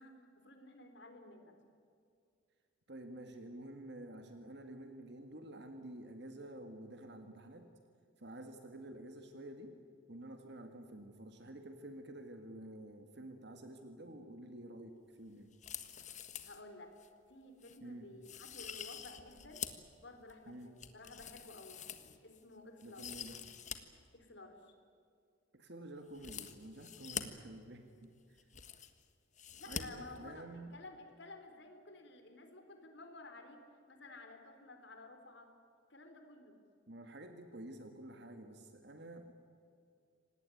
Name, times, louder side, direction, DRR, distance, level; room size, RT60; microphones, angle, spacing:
voice 1, 0.0-1.6 16.4-16.9 17.3-19.6 20.0-21.8 22.2-23.1 24.1-24.7 29.6-33.6 33.9-35.5 35.9-36.6, left 2 dB, 60° left, 5 dB, 4.0 m, -53 dB
voice 2, 2.9-7.7 8.2-9.8 10.1-15.5 17.8-18.1 20.5-20.7 22.8-23.4 25.5-28.5 29.7-30.8 36.9-39.3, right 1 dB, 55° right, 6 dB, 1.9 m, -50 dB
sound 1, 15.5-16.6 17.0-17.1 17.6-17.8 18.2-19.9 20.3-22.4 22.8-23.8 24.0-24.1 26.1-27.2 28.0-28.1 28.3-29.0 29.4-29.8 30.1-30.2, left 8 dB, 35° left, 1.5 m, -46 dB
26.5 x 19.0 x 9.3 m, 2.4 s
head